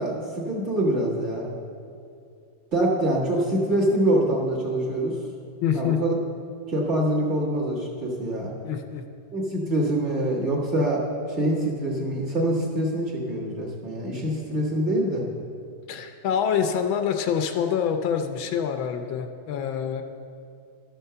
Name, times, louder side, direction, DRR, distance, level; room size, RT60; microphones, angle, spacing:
voice 1, 0.0-1.5 2.7-5.2 5.7-6.1 6.7-8.5 9.3-11.0 11.4-15.3, right 1 dB, 35° right, -6 dB, 1.8 m, -25 dB
voice 2, 5.6-6.0 8.6-9.0 15.9-20.0, left 8 dB, 75° left, 6 dB, 1.3 m, -26 dB
12.5 x 4.5 x 6.7 m, 2.4 s
omnidirectional pair, 2.2 m